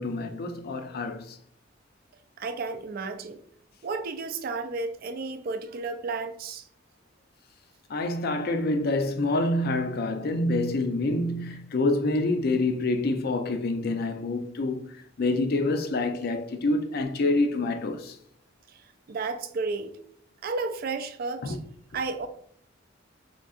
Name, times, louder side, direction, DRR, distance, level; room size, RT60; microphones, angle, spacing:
voice 1, 0.0-1.4 7.9-14.8 15.2-18.2 21.4-21.6, left 2 dB, 55° left, 0.5 m, -27 dB
voice 2, 2.4-3.4 3.8-6.7 18.7-19.9 20.4-21.6 21.9-22.3, right 3 dB, 50° right, 0.4 m, -32 dB
3.7 x 3.6 x 2.4 m
head